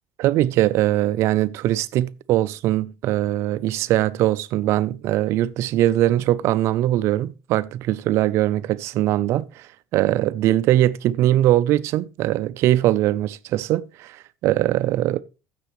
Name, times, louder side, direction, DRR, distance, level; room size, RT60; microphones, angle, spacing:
voice 1, 0.2-15.2, right 14 dB, 60° right, 0.5 m, -21 dB
15.0 x 6.8 x 3.1 m
supercardioid pair, 110°, 5 cm